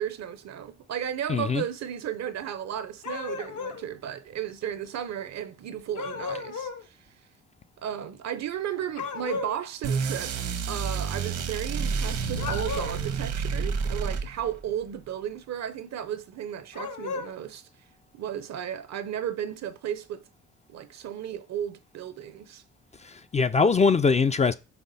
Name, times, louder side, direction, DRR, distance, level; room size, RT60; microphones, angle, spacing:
voice 1, 0.0-6.7 7.8-10.4 10.7-17.6 18.1-20.2 20.7-22.6, right 10 dB, 60° right, 0.7 m, -34 dB
voice 2, 1.3-1.6 23.0-24.5, left 5 dB, 25° left, 0.4 m, -22 dB
sound 1, 3.0-3.8 6.0-6.8 9.0-9.6 12.3-13.1 16.7-17.3, left 5 dB, 75° left, 1.1 m, -34 dB
sound 2, 9.8-14.6, right 5 dB, 80° right, 1.2 m, -29 dB
5.7 x 4.8 x 4.1 m
cardioid pair, 90°, 30 cm